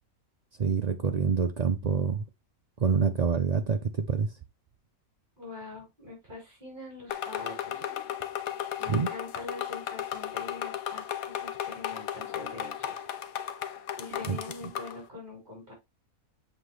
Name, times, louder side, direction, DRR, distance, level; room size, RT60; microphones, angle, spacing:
voice 1, 0.6-2.2 2.8-4.3 8.9-9.1 14.3-14.4, right 6 dB, 80° right, 0.3 m, -26 dB
voice 2, 5.4-7.8 8.8-13.0 14.0-15.7, left 3 dB, 35° right, 5.4 m, -44 dB
sound 1, 7.1-15.0, left 10 dB, 80° left, 1.2 m, -35 dB
7.8 x 4.8 x 3.2 m
omnidirectional pair, 1.5 m